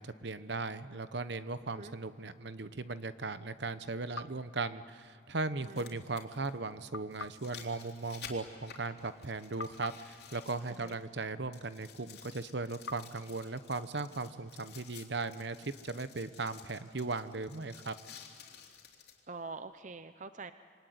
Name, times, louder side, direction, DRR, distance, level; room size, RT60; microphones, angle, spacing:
voice 1, 0.0-17.9, right 3 dB, 65° right, 12 dB, 1.0 m, -38 dB
sound 1, 2.3-2.4 4.3-4.4 5.5-11.2 11.5-19.2 19.8-19.9, left 7 dB, 55° left, 3.4 m, -53 dB
sound 2, 4.1-5.5 6.9-9.2 9.6-11.9 12.9-14.7, left 4 dB, 85° left, 0.7 m, -50 dB
voice 2, 5.6-6.0 10.8-11.0 19.3-20.5, right 3 dB, 40° right, 10 dB, 0.7 m, -45 dB
26.5 x 24.0 x 9.4 m, 2.1 s
head